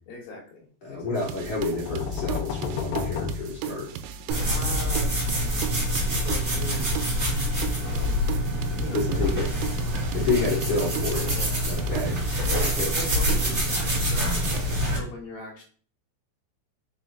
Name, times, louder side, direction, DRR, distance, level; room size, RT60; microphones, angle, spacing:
voice 1, 0.1-1.1 4.5-5.8 6.2-7.2 7.8-8.2 8.8-11.7 12.5-15.6, left 2 dB, 60° left, -1 dB, 4.0 m, -40 dB
voice 2, 0.8-3.9 8.9-9.5 10.1-11.3 11.7-12.2 12.8-12.9, left 3 dB, 35° left, -6 dB, 3.6 m, -29 dB
sound 1, 1.2-14.6, right 9 dB, 80° right, 3.2 m, -37 dB
sound 2, 1.4-4.3, left 6 dB, 85° left, 2.3 m, -32 dB
sound 3, 4.3-15.0, equal, 20° right, 2.5 m, -26 dB
7.7 x 7.1 x 2.6 m, 0.43 s
omnidirectional pair, 5.9 m